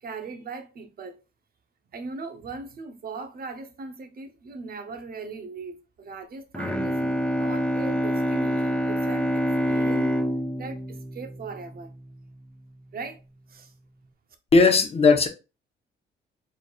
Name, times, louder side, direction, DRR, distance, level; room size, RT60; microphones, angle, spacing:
voice 1, 0.0-1.2 1.9-10.1 10.6-11.9 12.9-13.2 13.5-13.7, right 4 dB, 50° right, 0.8 m, -39 dB
Bowed string instrument, 6.5-12.2, equal, 5° left, 0.5 m, -26 dB
voice 2, 14.5-15.3, left 4 dB, 30° left, 0.8 m, -17 dB
4.2 x 3.1 x 2.4 m
cardioid pair, 90°, 20 cm